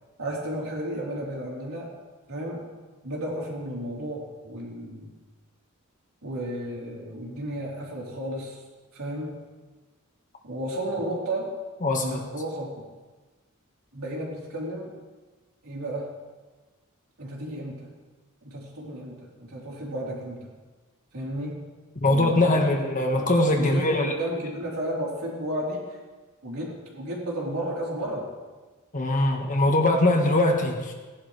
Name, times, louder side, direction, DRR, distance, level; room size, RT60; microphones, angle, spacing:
voice 1, 0.2-2.0 2.3-2.7 3.0-5.1 6.2-8.6 8.9-9.4 10.4-11.5 12.0-12.7 13.9-15.0 15.6-16.1 17.2-17.9 18.4-20.5 21.1-21.7 22.0-22.6 23.2-26.0 26.4-28.3, right 1 dB, 85° right, -4 dB, 3.6 m, -33 dB
voice 2, 11.8-12.2 22.0-24.1 28.9-30.9, left 2 dB, 35° left, 2 dB, 1.4 m, -22 dB
17.0 x 11.0 x 3.2 m, 1.3 s
head